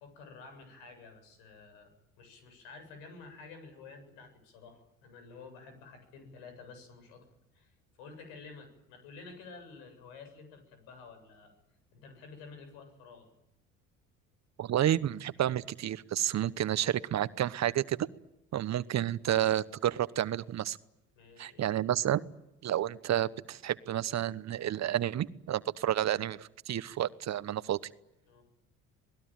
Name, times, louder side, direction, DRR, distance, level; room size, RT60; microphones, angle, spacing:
voice 1, 0.0-7.2 7.5-11.5 11.9-13.3 21.1-21.7 28.3-28.4, left 4 dB, 75° left, 8 dB, 8.0 m, -51 dB
voice 2, 14.6-18.0 18.5-20.8 21.4-22.2 22.6-27.8, right 11 dB, 45° right, 16 dB, 1.1 m, -30 dB
27.0 x 20.0 x 9.1 m, 0.88 s
hypercardioid pair, 60°, 38 cm